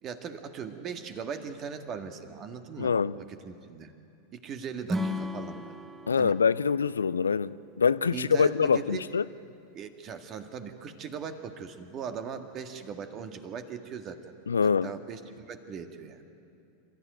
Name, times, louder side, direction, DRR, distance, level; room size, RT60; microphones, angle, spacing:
voice 1, 0.0-2.9 3.3-3.9 4.3-5.7 6.2-6.4 8.1-9.1 9.7-14.2 14.8-16.2, right 6 dB, 35° right, 1.8 m, -39 dB
voice 2, 2.8-3.2 6.1-9.2 14.5-14.9, left 6 dB, 80° left, 0.4 m, -25 dB
Acoustic guitar / Strum, 4.9-8.1, left 1 dB, 15° right, 1.1 m, -36 dB
26.5 x 14.0 x 9.3 m
figure-of-eight pair, 90°, 0 cm